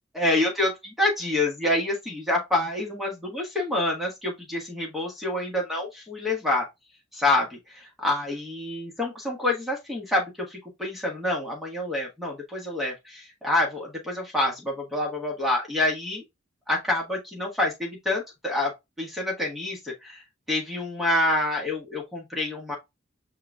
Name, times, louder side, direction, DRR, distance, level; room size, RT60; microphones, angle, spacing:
voice 1, 0.1-6.7 7.1-16.2 16.7-18.7 19.0-22.8, left 2 dB, ahead, 1.4 m, -27 dB
5.7 x 3.8 x 2.2 m
head